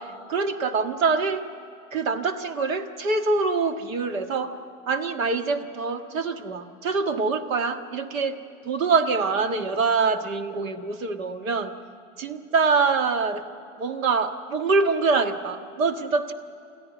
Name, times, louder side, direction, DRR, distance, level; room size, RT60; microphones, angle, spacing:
voice 1, 0.0-1.4 1.9-4.6 4.9-8.4 8.6-11.7 12.2-13.4 13.8-16.3, right 4 dB, 85° right, 7 dB, 1.7 m, -25 dB
28.0 x 14.0 x 9.0 m, 2.8 s
hypercardioid pair, 110°, 39 cm